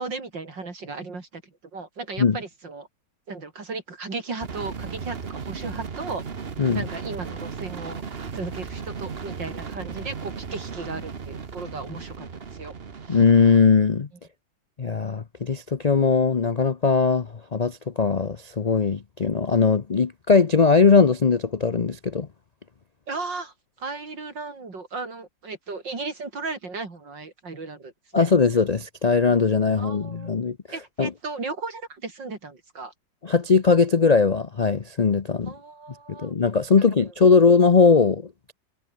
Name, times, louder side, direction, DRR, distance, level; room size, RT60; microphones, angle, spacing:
voice 1, 0.0-2.9 3.3-6.2 6.7-8.0 8.3-12.7 13.0-13.2 23.1-28.3 29.7-30.3 30.7-32.9 35.5-36.3 36.8-36.9, right 3 dB, 90° right, 4.8 m, -35 dB
sound 1, 4.4-13.6, right 5 dB, 35° right, 1.4 m, -36 dB
voice 2, 13.1-14.1 14.8-22.3 28.1-30.6 31.0-31.1 33.2-35.5 36.1-38.5, left 5 dB, 70° left, 0.3 m, -20 dB
omnidirectional pair, 1.9 m